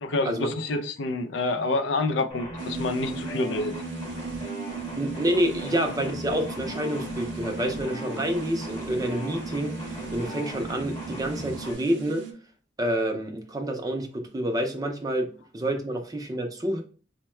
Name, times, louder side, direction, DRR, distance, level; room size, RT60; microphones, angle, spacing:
voice 1, 0.0-3.7, left 2 dB, 70° left, 7 dB, 0.4 m, -27 dB
sound 1, 2.3-11.7, equal, 25° left, 1.0 m, -38 dB
sound 2, 2.6-12.3, right 4 dB, 65° right, 0.6 m, -38 dB
voice 2, 5.0-12.2 12.8-16.8, right 1 dB, 20° right, 4 dB, 0.5 m, -28 dB
4.4 x 2.1 x 3.0 m, 0.38 s
head